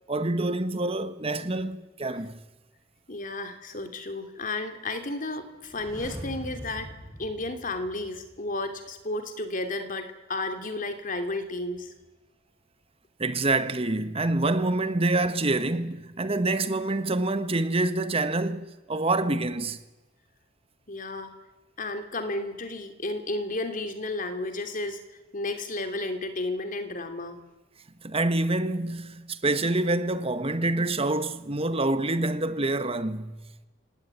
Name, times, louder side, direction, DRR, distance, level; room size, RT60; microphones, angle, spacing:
voice 1, 0.1-2.4 13.2-19.8 28.0-33.4, right 2 dB, 30° right, 1.3 m, -26 dB
voice 2, 3.1-6.9 7.2-11.9 20.9-21.3 21.8-25.0 25.3-27.4, left 2 dB, 45° left, 2.9 m, -32 dB
sound 1, 5.6-8.5 8.8-8.9, equal, 20° left, 7.7 m, -42 dB
27.5 x 17.5 x 10.0 m
head